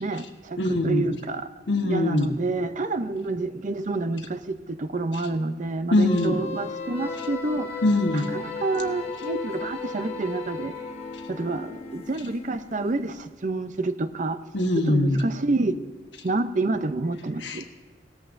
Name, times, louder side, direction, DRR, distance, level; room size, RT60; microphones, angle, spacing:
voice 1, 0.0-7.8 8.1-10.8 11.3-14.4 14.8-15.8 16.2-17.7, right 3 dB, 45° right, 11 dB, 0.6 m, -28 dB
voice 2, 0.6-1.1 1.7-2.3 5.9-6.4 7.8-8.3 9.2-9.3 14.5-15.2 17.4-17.7, left 2 dB, 70° left, 4 dB, 1.2 m, -22 dB
sound 1, 6.1-13.3, left 4 dB, 35° left, 1.2 m, -36 dB
18.0 x 13.5 x 2.6 m, 1.4 s
head